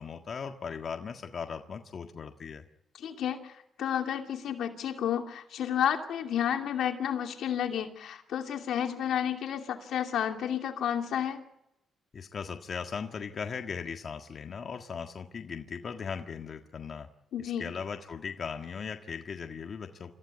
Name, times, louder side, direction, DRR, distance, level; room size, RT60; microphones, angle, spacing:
voice 1, 0.0-2.6 12.1-17.1 17.4-20.1, left 6 dB, 45° left, 4 dB, 1.7 m, -38 dB
voice 2, 3.0-11.4 17.3-17.7, left 9 dB, 75° left, 5 dB, 2.7 m, -31 dB
27.0 x 15.0 x 9.7 m, 0.87 s
cardioid pair, 105°, 0 cm